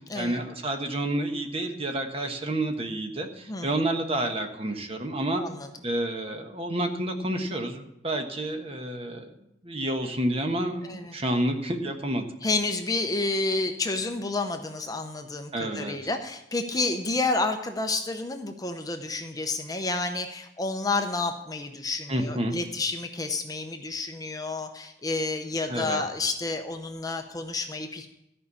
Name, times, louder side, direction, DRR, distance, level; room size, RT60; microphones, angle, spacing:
voice 1, 0.1-5.4 5.8-9.3 9.6-12.3 15.5-15.9 22.1-22.5 25.7-26.0, right 1 dB, 30° right, 5 dB, 1.2 m, -29 dB
voice 2, 5.4-5.7 10.8-11.2 12.4-28.1, left 3 dB, 20° left, 6 dB, 0.7 m, -30 dB
13.5 x 5.5 x 8.4 m, 0.83 s
head